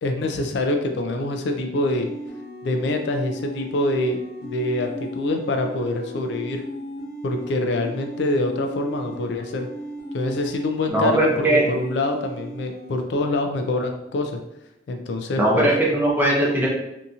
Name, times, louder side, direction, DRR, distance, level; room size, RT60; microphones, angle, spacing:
voice 1, 0.0-2.1 2.6-6.6 7.2-9.7 10.1-14.4 14.9-15.7, left 2 dB, 65° left, 4 dB, 0.3 m, -25 dB
sound 1, 1.8-13.0, equal, 15° left, 1.0 m, -36 dB
voice 2, 10.9-11.6 15.4-16.7, right 1 dB, 10° right, -4 dB, 0.6 m, -19 dB
2.7 x 2.7 x 2.4 m, 0.88 s
head